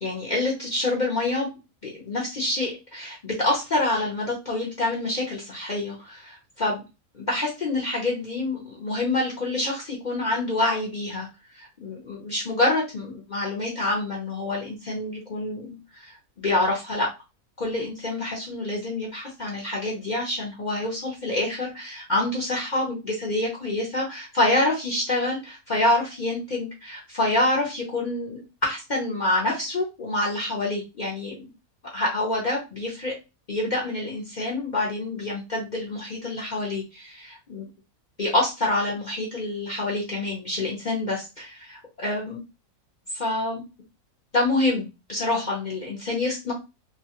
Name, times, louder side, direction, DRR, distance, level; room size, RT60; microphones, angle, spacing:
voice 1, 0.0-1.5 1.8-6.8 7.1-11.3 11.5-17.1 17.6-31.5 31.9-33.1 33.5-37.7 38.2-42.4 43.1-43.6 44.3-46.5, left 2 dB, 45° left, -3 dB, 0.6 m, -27 dB
3.1 x 2.3 x 2.8 m, 0.27 s
omnidirectional pair, 1.6 m